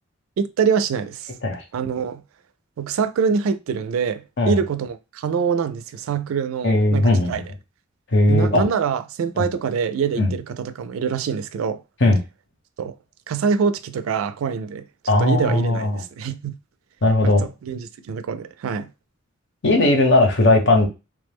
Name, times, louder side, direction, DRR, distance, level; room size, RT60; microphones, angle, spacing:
voice 1, 0.4-1.3 1.7-2.2 2.8-7.4 8.3-11.8 12.8-12.9 13.3-14.9 15.2-16.6 17.2-18.9, right 6 dB, 80° right, 0.3 m, -25 dB
voice 2, 6.6-7.4 8.1-8.6 9.4-9.5 10.2-10.3 12.0-12.2 15.1-16.0 17.0-17.5 19.6-20.9, left 2 dB, 60° left, 1.0 m, -17 dB
3.1 x 2.1 x 3.4 m
head